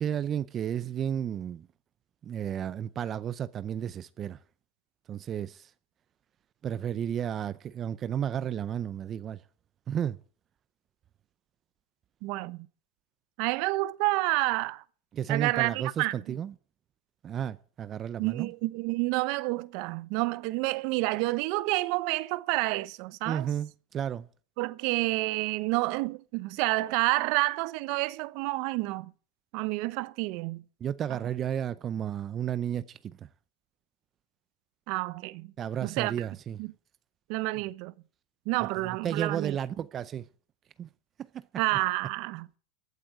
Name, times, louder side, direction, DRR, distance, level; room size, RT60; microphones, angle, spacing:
voice 1, 0.0-1.7 2.2-4.4 5.1-5.7 6.6-9.4 9.9-10.2 15.1-16.5 17.2-18.5 23.3-24.3 30.8-33.0 35.6-36.6 38.8-40.3 40.8-40.9 41.3-41.4, right 9 dB, 25° right, 0.6 m, -32 dB
voice 2, 12.2-12.7 13.4-14.8 15.3-16.3 18.2-23.5 24.6-29.1 29.5-30.6 34.9-35.5 35.8-36.3 36.6-36.7 37.3-37.9 38.5-39.6 41.6-42.5, right 21 dB, 55° right, 0.9 m, -29 dB
15.0 x 8.6 x 7.6 m
supercardioid pair, 140°, 0 cm